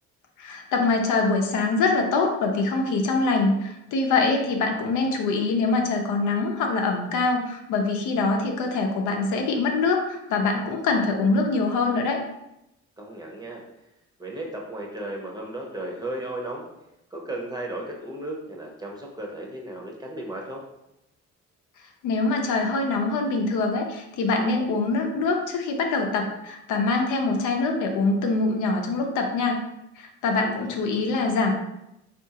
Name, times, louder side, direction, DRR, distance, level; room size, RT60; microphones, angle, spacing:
voice 1, 0.4-12.2 22.0-29.6 30.0-31.5, left 3 dB, 85° left, 2 dB, 0.6 m, -24 dB
voice 2, 13.0-13.6 14.2-16.7 17.1-20.6 30.4-30.8, right 1 dB, 15° right, -1 dB, 0.7 m, -35 dB
3.5 x 2.5 x 2.8 m, 0.87 s
cardioid pair, 90°, 30 cm